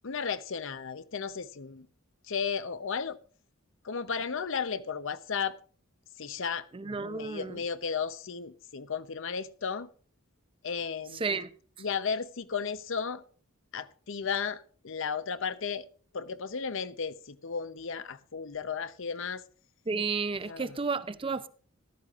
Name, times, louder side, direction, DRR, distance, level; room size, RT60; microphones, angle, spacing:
voice 1, 0.0-1.9 2.3-3.2 3.8-5.6 6.2-6.7 7.0-9.9 10.6-11.3 11.8-13.2 13.7-15.8 16.1-19.4 20.4-20.7, left 6 dB, 65° left, 0.7 m, -34 dB
voice 2, 6.7-7.6 11.1-11.5 19.9-21.5, right 4 dB, 25° right, 0.6 m, -32 dB
14.5 x 12.5 x 2.5 m
head